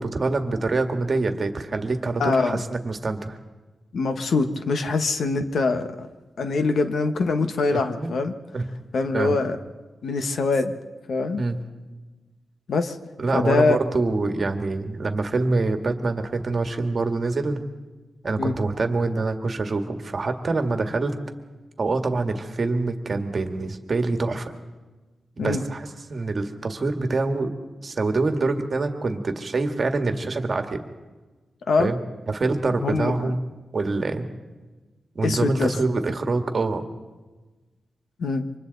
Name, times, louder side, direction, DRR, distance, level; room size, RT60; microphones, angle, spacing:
voice 1, 0.0-3.4 7.7-8.1 8.5-8.7 9.1-9.3 11.4-11.6 13.2-17.6 18.2-21.2 21.8-24.5 25.4-27.5 27.8-30.8 31.8-32.0 32.3-33.4 33.7-34.3 35.2-36.9, right 3 dB, 40° right, 5 dB, 1.8 m, -25 dB
voice 2, 2.2-2.6 3.9-6.1 6.4-8.3 8.9-9.6 10.0-10.8 11.1-11.4 12.7-13.0 13.3-13.8 18.4-18.5 25.4-25.6 31.7-31.9 32.8-33.3 35.2-35.7 38.2-38.4, left 3 dB, 70° left, 7 dB, 1.5 m, -23 dB
29.0 x 25.0 x 4.1 m, 1.2 s
wide cardioid pair, 145°, 0 cm